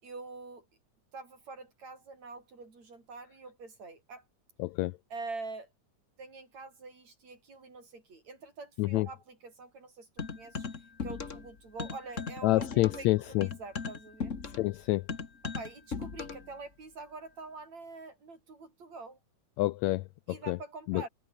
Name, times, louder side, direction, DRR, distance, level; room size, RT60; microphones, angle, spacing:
voice 1, 0.0-0.7 1.1-4.2 5.1-5.7 6.2-10.7 11.0-14.3 15.4-19.2 20.3-21.1, right 3 dB, 55° right, 7.8 m, -45 dB
voice 2, 4.6-5.0 8.8-9.1 12.4-13.5 14.5-15.1 19.6-20.6 20.9-21.1, left 18 dB, 85° left, 1.6 m, -28 dB
sound 1, 10.2-11.5 11.8-16.5, left 5 dB, 30° left, 1.6 m, -38 dB
omnidirectional pair, 3.7 m